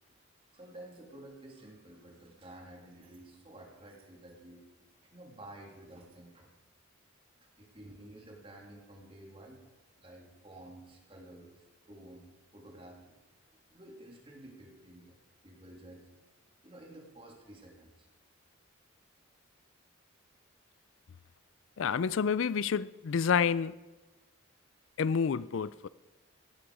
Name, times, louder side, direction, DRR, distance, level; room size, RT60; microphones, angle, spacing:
voice 1, 0.3-4.6 5.0-6.5 7.6-9.6 10.0-12.2 12.5-13.2 13.7-15.2 15.4-16.1 16.6-18.1, right 1 dB, 25° right, 0 dB, 2.9 m, -51 dB
voice 2, 21.8-23.7 25.0-25.9, left 6 dB, 70° left, 18 dB, 0.4 m, -29 dB
17.5 x 13.0 x 4.9 m, 1.2 s
head